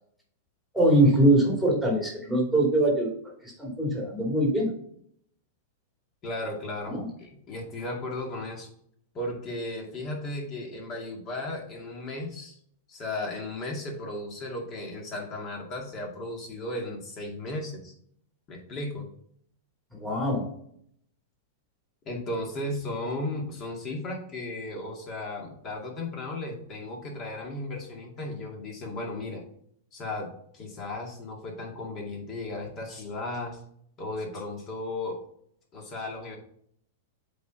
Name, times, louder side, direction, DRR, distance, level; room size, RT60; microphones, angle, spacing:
voice 1, 0.7-3.1 3.4-4.7 6.9-7.0 19.9-20.5, right 1 dB, 5° left, -2 dB, 2.6 m, -23 dB
voice 2, 6.2-8.7 9.1-12.6 12.9-17.9 18.5-19.1 22.0-29.4 29.9-33.6 34.0-35.2 35.7-36.4, left 2 dB, 30° left, 0 dB, 2.4 m, -35 dB
7.9 x 4.7 x 4.0 m, 0.66 s
supercardioid pair, 145°, 0 cm